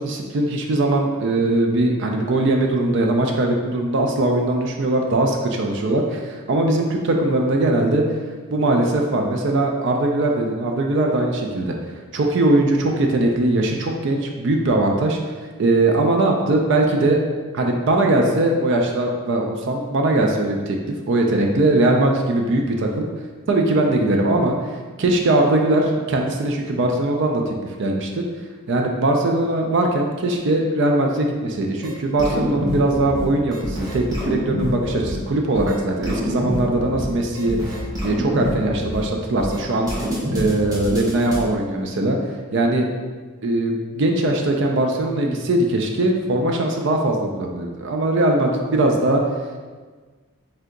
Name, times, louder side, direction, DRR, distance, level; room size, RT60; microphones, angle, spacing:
voice 1, 0.0-8.0 8.5-11.7 12.1-15.2 15.6-17.2 17.5-23.1 23.5-24.5 25.0-28.2 28.7-37.8 38.0-39.9 40.3-42.2 42.5-42.9 43.4-49.2, right 2 dB, 55° right, 2 dB, 0.4 m, -20 dB
sound 1, 31.8-31.9 32.2-33.2 33.5-35.1 35.5-35.7 36.0-37.1 37.3-39.0 39.4-39.6 39.9-41.4, equal, 15° right, 0.7 m, -26 dB
3.4 x 2.7 x 3.7 m, 1.4 s
head